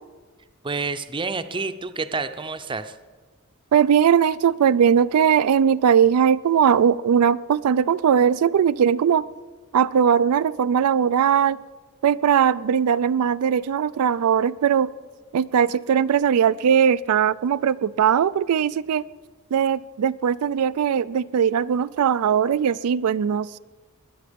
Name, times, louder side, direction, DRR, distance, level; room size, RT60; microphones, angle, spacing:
voice 1, 0.6-2.9, right 4 dB, 20° right, 10 dB, 0.6 m, -29 dB
voice 2, 3.7-9.2 9.7-11.6 12.0-14.9 15.3-19.0 19.5-23.6, right 8 dB, 85° right, 15 dB, 0.4 m, -19 dB
21.0 x 10.0 x 5.2 m, 1.4 s
head